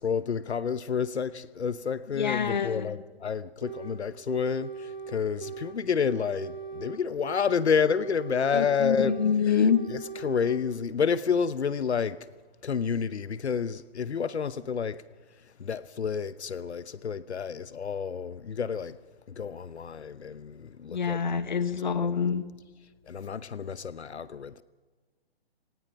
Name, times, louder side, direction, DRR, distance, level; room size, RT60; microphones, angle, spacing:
voice 1, 0.0-9.1 9.5-9.6 9.9-12.2 12.6-15.0 15.6-19.0 19.4-21.2 21.9-22.1 23.1-24.6, left 6 dB, 90° left, 0.9 m, -29 dB
voice 2, 2.1-2.9 8.5-9.8 20.9-22.5, left 7 dB, 45° left, 1.5 m, -26 dB
sound 1, 3.6-4.0 4.3-5.8 6.1-7.6 7.9-9.4 9.7-10.6, right 6 dB, 45° right, 3.1 m, -40 dB
29.5 x 18.5 x 5.4 m
hypercardioid pair, 175°, 32 cm